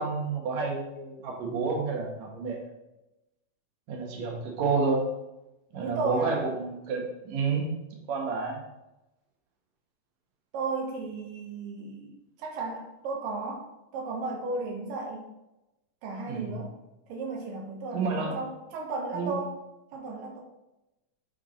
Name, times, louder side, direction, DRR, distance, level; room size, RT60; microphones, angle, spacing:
voice 1, 0.0-2.6 3.9-5.0 5.7-8.6 16.3-16.6 17.9-18.4 19.1-19.3, right 4 dB, 65° right, 0 dB, 2.3 m, -30 dB
voice 2, 5.8-6.4 10.5-15.3 16.0-16.7 17.1-19.6 19.9-20.4, right 3 dB, 80° right, 0 dB, 2.5 m, -34 dB
8.9 x 3.5 x 4.0 m, 0.95 s
omnidirectional pair, 3.9 m